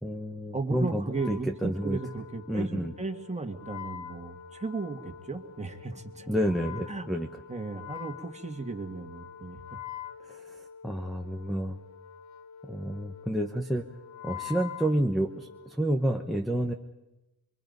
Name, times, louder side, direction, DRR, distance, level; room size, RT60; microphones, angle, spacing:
voice 1, 0.0-2.0 2.5-2.9 6.3-7.3 10.3-11.8 12.6-13.9 14.2-16.7, right 1 dB, ahead, 5 dB, 0.9 m, -30 dB
voice 2, 0.5-6.4 6.9-7.1 7.5-9.6, right 3 dB, 20° right, 4 dB, 1.8 m, -35 dB
Wind instrument woodwind instrument, 1.0-15.8, left 9 dB, 55° left, 1.0 m, -45 dB
24.5 x 24.0 x 5.4 m, 1.0 s
wide cardioid pair, 100°, 35 cm